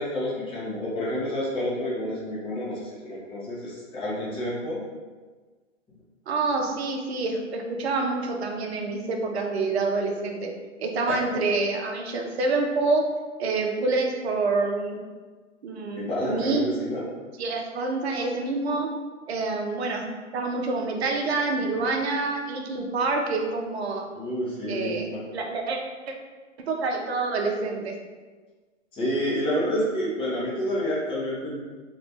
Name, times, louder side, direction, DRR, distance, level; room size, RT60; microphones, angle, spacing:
voice 1, 0.0-4.8 11.0-11.2 16.0-17.0 24.1-25.2 28.9-31.5, equal, 15° left, -7 dB, 0.9 m, -29 dB
voice 2, 6.3-10.5 10.8-13.0 13.4-15.0 15.6-16.6 17.4-18.9 19.3-20.1 20.3-24.0 24.7-25.1 25.3-25.8 26.1-26.2 26.7-28.0, right 3 dB, 55° right, 2 dB, 0.7 m, -27 dB
2.8 x 2.5 x 3.4 m, 1.4 s
hypercardioid pair, 130°, 37 cm